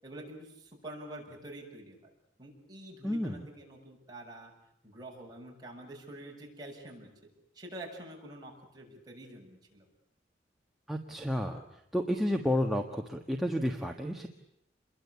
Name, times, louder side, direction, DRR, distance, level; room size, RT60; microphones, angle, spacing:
voice 1, 0.0-2.0 2.4-4.5 4.8-7.1 7.5-9.9, right 1 dB, 20° right, -1 dB, 7.3 m, -47 dB
voice 2, 3.0-3.4 10.9-11.6 11.9-14.3, equal, ahead, 2 dB, 1.6 m, -31 dB
28.5 x 22.5 x 8.5 m, 0.76 s
head